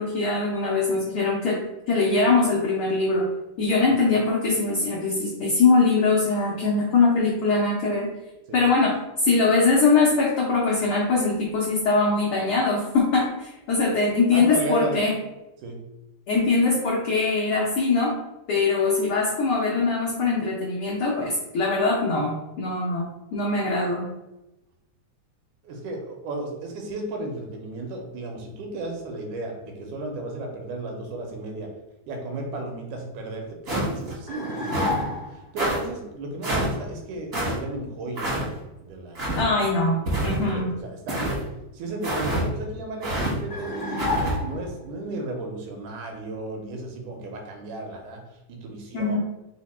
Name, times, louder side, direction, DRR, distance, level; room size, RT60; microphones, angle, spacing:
voice 1, 0.0-1.6 1.9-3.3 3.6-8.1 8.5-15.1 16.3-18.1 18.5-23.0 23.3-24.1 39.4-40.7 48.9-49.2, left 3 dB, 85° left, -4 dB, 1.2 m, -22 dB
voice 2, 14.3-15.0 15.6-15.8 25.6-31.7 32.1-39.6 40.3-41.4 41.7-49.2, right 2 dB, 85° right, 3 dB, 2.2 m, -34 dB
sound 1, 33.7-34.1 34.7-35.0 35.6-35.8 36.4-36.7 37.3-37.5 38.2-38.4 39.1-39.5 40.1-40.5 41.1-41.4 42.0-42.4 43.0-43.3 44.0-44.3, right 1 dB, 60° right, 0.8 m, -26 dB
sound 2, 34.3-35.4 43.5-44.8, left 2 dB, 45° left, 0.7 m, -29 dB
4.9 x 2.1 x 4.1 m, 0.96 s
omnidirectional pair, 3.4 m